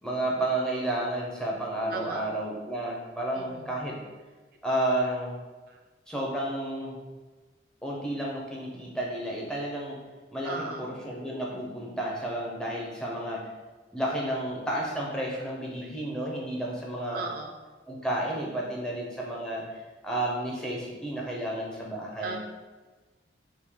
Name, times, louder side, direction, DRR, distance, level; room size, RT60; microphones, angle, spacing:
voice 1, 0.0-4.0 4.6-5.4 6.1-7.0 7.8-10.0 10.3-13.5 13.9-17.2 17.9-22.4, right 1 dB, 5° left, -4 dB, 0.5 m, -31 dB
voice 2, 1.9-2.3 3.3-3.7 5.7-5.8 10.4-10.9 13.3-13.4 15.3-15.5 15.8-15.9 17.1-17.5 21.3-21.4 22.1-22.4, right 4 dB, 50° right, 2 dB, 0.3 m, -38 dB
3.5 x 2.7 x 3.1 m, 1.3 s
head